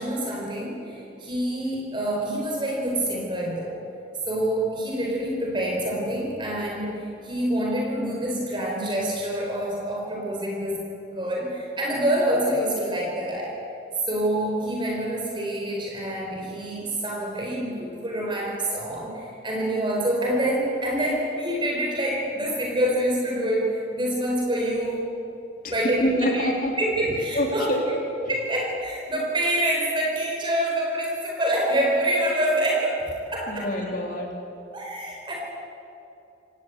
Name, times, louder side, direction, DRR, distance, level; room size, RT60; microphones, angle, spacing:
voice 1, 0.0-3.8 4.3-13.5 14.0-25.1 25.7-26.5 26.8-33.7 34.7-35.3, right 1 dB, 25° right, -1 dB, 4.4 m, -26 dB
voice 2, 26.0-26.7 27.0-28.3 33.5-34.3, equal, 50° left, 0 dB, 3.6 m, -27 dB
29.5 x 17.5 x 8.3 m, 2.8 s
head